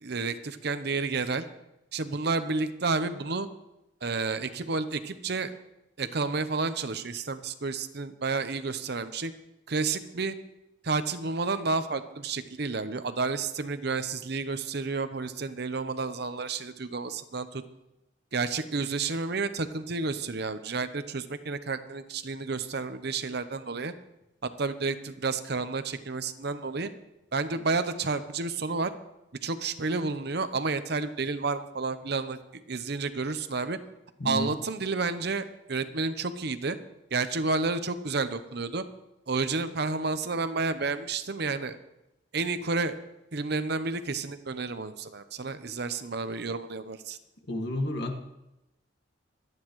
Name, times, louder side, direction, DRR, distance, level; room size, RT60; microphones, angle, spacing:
voice 1, 0.0-1.4 1.9-3.5 4.0-5.5 6.0-9.3 9.7-10.4 10.8-17.6 18.3-23.9 24.4-26.9 27.3-28.9 29.4-33.8 34.2-36.8 37.1-38.8 39.3-41.8 42.3-43.0 43.3-47.2, right 4 dB, 60° right, 10 dB, 0.8 m, -30 dB
voice 2, 34.2-34.5 47.5-48.2, left 1 dB, 60° left, 3 dB, 1.9 m, -30 dB
26.5 x 9.5 x 3.2 m, 0.93 s
head